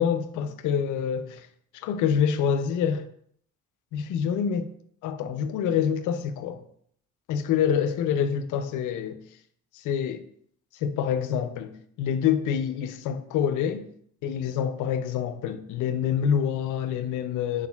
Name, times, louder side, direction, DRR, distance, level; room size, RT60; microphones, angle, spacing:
voice 1, 0.0-1.4 1.7-3.1 3.9-4.7 5.0-6.6 7.3-9.2 9.7-10.2 10.8-11.7 12.0-13.9 14.2-17.7, left 8 dB, 85° left, 0.5 m, -26 dB
4.4 x 4.0 x 2.3 m
cardioid pair, 90°, 30 cm